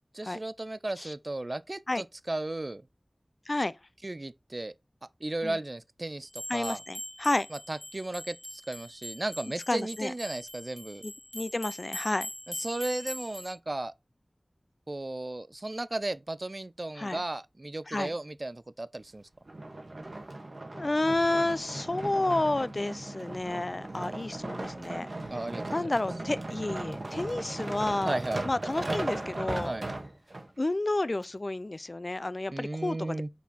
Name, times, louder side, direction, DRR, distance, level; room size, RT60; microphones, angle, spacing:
voice 1, 0.1-2.8 4.0-4.7 5.2-6.8 7.7-11.0 12.6-13.9 14.9-19.3 25.3-25.8 28.1-28.4 29.6-29.9 32.5-33.3, right 2 dB, 50° right, 0.4 m, -35 dB
voice 2, 3.5-3.8 5.4-5.6 6.5-7.5 9.7-10.1 11.0-12.3 17.0-17.2 17.9-18.1 20.7-25.1 25.7-28.2 28.4-29.7 30.6-33.2, left 2 dB, 55° left, 0.4 m, -30 dB
sound 1, 6.3-13.5, left 1 dB, 30° left, 1.4 m, -42 dB
sound 2, 19.5-30.5 31.1-31.2, right 2 dB, 70° right, 1.3 m, -37 dB
5.8 x 4.3 x 4.0 m
wide cardioid pair, 50°, 0 cm